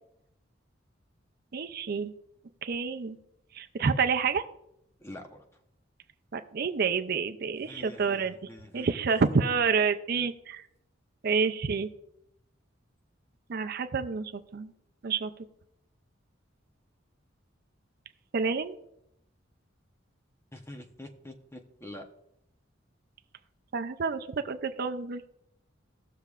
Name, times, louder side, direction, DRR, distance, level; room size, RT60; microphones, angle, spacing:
voice 1, 1.5-2.1 2.6-3.2 3.5-4.4 6.3-8.3 8.7-10.6 11.2-11.9 13.5-14.7 15.0-15.3 18.3-18.8 23.7-25.3, right 5 dB, 50° right, 9 dB, 0.5 m, -28 dB
voice 2, 5.0-5.4 7.6-8.9 20.5-22.0, left 1 dB, 15° left, 4 dB, 0.8 m, -45 dB
16.5 x 6.6 x 2.4 m, 0.77 s
head